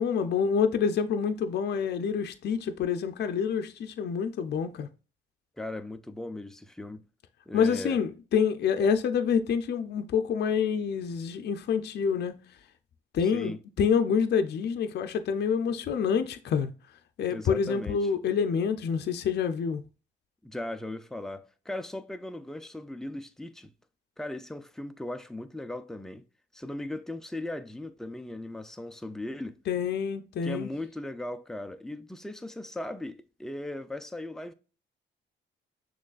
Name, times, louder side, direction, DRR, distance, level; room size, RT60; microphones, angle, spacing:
voice 1, 0.0-4.9 7.5-12.4 13.1-16.7 17.2-19.8 29.7-30.7, left 6 dB, 55° left, 0.6 m, -27 dB
voice 2, 5.6-7.1 7.5-8.0 13.3-13.6 17.3-18.1 20.4-23.7 24.2-26.2 26.5-29.6 30.4-34.5, left 1 dB, ahead, 0.5 m, -38 dB
6.2 x 3.1 x 2.4 m
cardioid pair, 90°, 20 cm